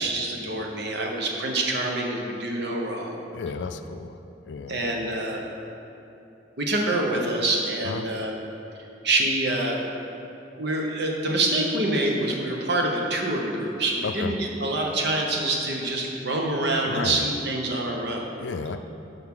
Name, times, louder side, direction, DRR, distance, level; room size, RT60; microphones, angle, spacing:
voice 1, 0.0-3.2 4.7-5.4 6.6-8.3 9.0-9.8 10.6-18.3, right 2 dB, 65° right, 0 dB, 1.1 m, -26 dB
voice 2, 3.3-4.2 4.4-4.8 7.8-8.1 14.0-14.3 16.9-17.2 18.4-18.8, left 5 dB, 70° left, 9 dB, 0.4 m, -32 dB
10.5 x 5.6 x 3.8 m, 2.9 s
head